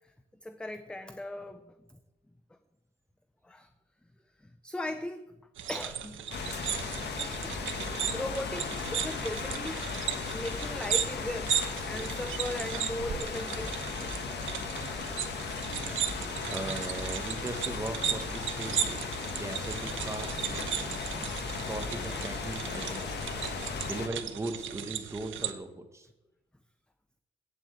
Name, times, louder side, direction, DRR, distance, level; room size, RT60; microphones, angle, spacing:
voice 1, 0.4-1.6 3.4-3.7 4.4-5.3 5.7-6.2 6.6-6.9 7.2-7.8 8.1-9.9 10.3-14.4, left 1 dB, 5° left, 9 dB, 0.4 m, -38 dB
sound 1, 5.6-25.5, right 9 dB, 75° right, 1.0 m, -36 dB
sound 2, 6.3-24.1, left 4 dB, 55° left, 1.3 m, -36 dB
voice 2, 15.9-21.1 21.5-23.2 23.9-26.1, right 2 dB, 15° right, 5 dB, 1.1 m, -40 dB
8.8 x 8.1 x 7.8 m, 1.0 s
wide cardioid pair, 165°, 20 cm